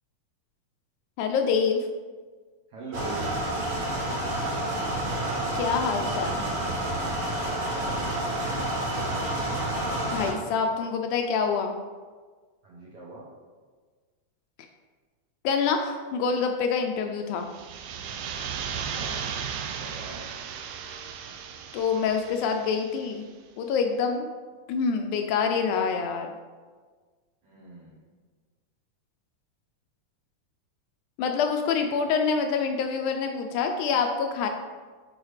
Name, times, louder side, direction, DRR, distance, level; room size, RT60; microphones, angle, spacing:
voice 1, 1.2-1.9 5.6-6.4 10.1-11.7 15.4-17.5 21.7-23.2 23.6-24.3 24.7-26.3 31.2-34.5, left 5 dB, 80° left, 4 dB, 1.9 m, -26 dB
voice 2, 2.7-3.3 7.3-8.3 12.6-13.3 18.8-19.2 19.8-20.2 27.4-28.0 31.8-32.1, right 2 dB, 65° right, -5 dB, 1.5 m, -43 dB
sound 1, 2.9-10.3, right 1 dB, 40° right, 2.8 m, -29 dB
sound 2, 17.4-23.1, right 7 dB, 90° right, 2.2 m, -36 dB
7.9 x 4.7 x 3.2 m, 1.4 s
omnidirectional pair, 3.7 m